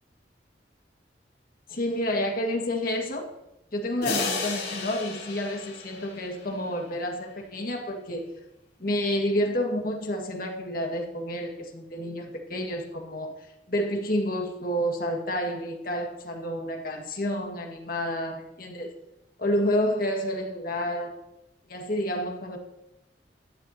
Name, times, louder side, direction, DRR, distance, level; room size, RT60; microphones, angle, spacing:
voice 1, 1.7-3.3 3.7-8.3 8.8-13.4 13.7-18.9 19.4-21.2 21.7-22.6, equal, 55° left, 2 dB, 1.8 m, -29 dB
sound 1, 4.0-6.7, left 4 dB, 80° left, 4.4 m, -33 dB
14.0 x 11.0 x 2.8 m, 0.93 s
head